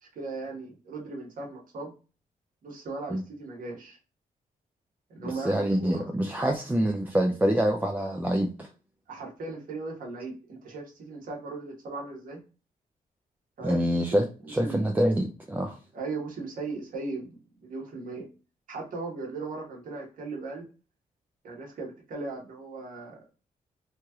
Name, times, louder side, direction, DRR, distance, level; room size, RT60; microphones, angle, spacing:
voice 1, 0.0-1.9 2.6-4.0 5.1-6.1 9.1-12.4 13.6-14.9 15.9-18.3 18.7-20.6 21.4-23.2, right 3 dB, 65° right, 1.2 m, -38 dB
voice 2, 5.2-8.7 13.6-15.8, equal, 10° right, 0.3 m, -26 dB
3.1 x 2.8 x 2.3 m
wide cardioid pair, 130°, 15 cm